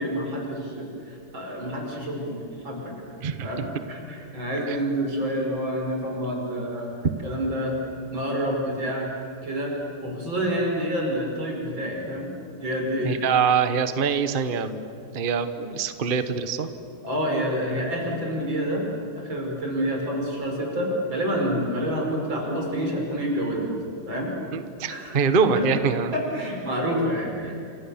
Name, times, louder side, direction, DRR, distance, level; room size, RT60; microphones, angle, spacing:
voice 1, 0.0-2.9 3.4-6.9 7.2-7.7 8.1-9.1 9.4-9.7 10.0-12.3 12.6-13.2 17.0-18.8 19.1-23.7 24.1-24.3 24.9-25.2 25.5-25.7 26.1-27.5, equal, 90° right, 0 dB, 6.4 m, -28 dB
voice 2, 3.2-3.6 4.7-4.8 13.0-14.9 15.1-16.7 24.5-26.1, right 6 dB, 35° right, 10 dB, 1.1 m, -24 dB
29.5 x 27.0 x 7.2 m, 2.5 s
omnidirectional pair, 2.1 m